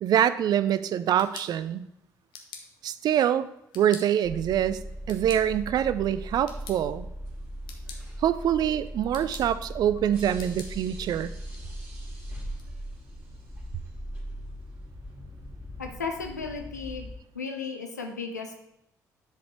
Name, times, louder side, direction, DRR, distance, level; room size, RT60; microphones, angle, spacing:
voice 1, 0.0-1.8 2.8-3.5 3.7-4.8 5.1-7.1 8.2-11.3, right 10 dB, 50° right, 15 dB, 0.4 m, -25 dB
sound 1, 0.9-12.7, left 5 dB, 60° left, 1.0 m, -50 dB
sound 2, 4.2-17.2, equal, 20° right, 3.0 m, -39 dB
voice 2, 15.8-17.1 17.3-18.6, left 5 dB, 85° left, 3 dB, 0.7 m, -35 dB
10.5 x 5.0 x 3.2 m, 0.83 s
figure-of-eight pair, 45°, 9 cm